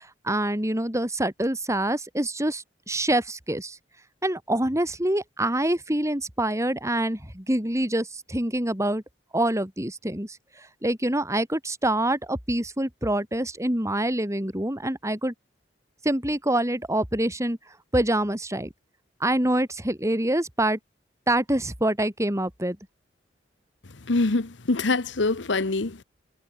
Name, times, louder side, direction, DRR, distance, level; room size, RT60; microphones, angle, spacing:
voice 1, 0.0-3.8 4.2-9.0 9.3-10.4 10.8-15.3 16.0-17.6 17.9-18.7 19.2-20.8 21.3-22.8, right 1 dB, 15° right, 5.9 m, -26 dB
voice 2, 24.1-26.0, left 3 dB, 85° left, 1.1 m, -24 dB
head